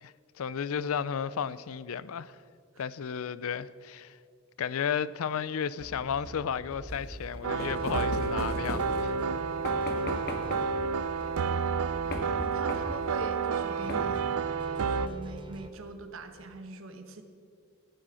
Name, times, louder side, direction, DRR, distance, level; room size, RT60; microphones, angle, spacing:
voice 1, 0.0-2.4 2.8-4.2 4.6-9.1, left 7 dB, 70° left, 0.4 m, -33 dB
sound 1, 5.8-15.7, right 1 dB, 20° right, 0.7 m, -46 dB
sound 2, 6.9-9.3 9.6-10.8 12.1-13.1 13.9-14.3, left 1 dB, 45° left, 1.5 m, -38 dB
sound 3, 7.4-15.1, right 5 dB, 85° right, 0.5 m, -30 dB
voice 2, 12.0-14.3 14.7-17.2, right 2 dB, 65° right, 1.1 m, -42 dB
14.5 x 8.9 x 6.3 m
head